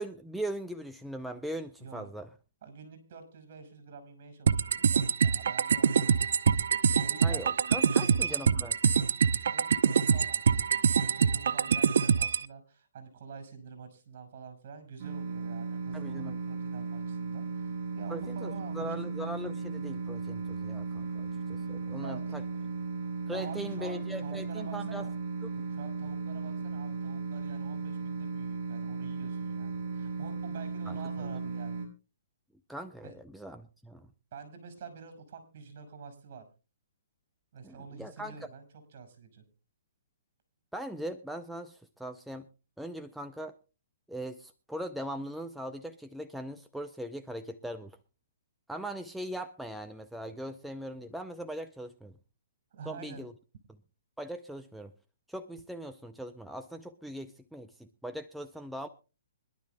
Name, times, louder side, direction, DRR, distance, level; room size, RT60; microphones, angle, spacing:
voice 1, 0.0-2.3 7.2-8.7 15.9-16.4 18.1-22.4 23.3-25.1 25.4-25.6 30.9-31.3 32.7-34.1 37.6-38.3 40.7-42.5 42.8-43.6 44.1-48.0 48.7-52.2 52.9-53.3 54.2-54.9 55.3-58.9, right 1 dB, ahead, 6 dB, 0.5 m, -40 dB
voice 2, 1.8-2.1 2.6-6.5 6.9-7.5 7.9-8.4 9.5-18.9 21.5-22.7 23.3-25.2 25.7-31.9 33.0-33.1 34.3-36.4 37.5-39.4 52.7-53.2, right 5 dB, 50° right, 8 dB, 5.5 m, -48 dB
sound 1, 4.5-12.4, right 6 dB, 70° right, 0.7 m, -25 dB
sound 2, 15.0-31.9, right 4 dB, 30° right, 6.6 m, -36 dB
25.0 x 11.5 x 2.3 m, 0.32 s
hypercardioid pair, 155°, 0 cm